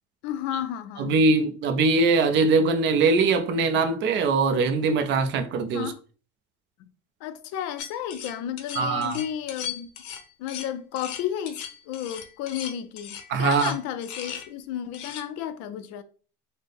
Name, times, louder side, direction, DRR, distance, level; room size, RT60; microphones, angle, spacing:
voice 1, 0.2-1.1 5.7-6.0 6.8-6.9 7.2-9.9 10.4-16.0, left 10 dB, 55° left, 0.5 m, -33 dB
voice 2, 1.0-5.9 8.8-9.2 13.3-13.7, right 3 dB, 35° right, 0.5 m, -22 dB
sound 1, 7.8-14.5 14.9-15.2, left 8 dB, 80° left, 0.7 m, -38 dB
4.0 x 2.1 x 3.3 m
cardioid pair, 160°, 31 cm